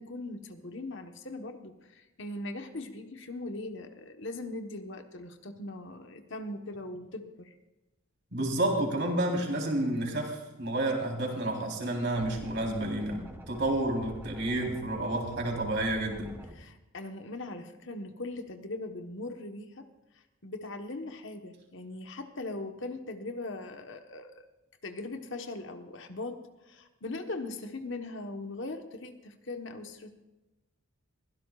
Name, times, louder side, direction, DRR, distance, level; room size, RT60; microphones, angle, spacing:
voice 1, 0.0-7.5 16.5-19.9 20.4-24.4 24.8-30.1, left 2 dB, 60° left, 6 dB, 1.2 m, -40 dB
voice 2, 8.3-16.4, right 1 dB, 55° right, 0 dB, 3.9 m, -30 dB
sound 1, 12.2-16.5, right 1 dB, 10° right, 1.2 m, -46 dB
22.5 x 16.5 x 2.5 m, 1.0 s
head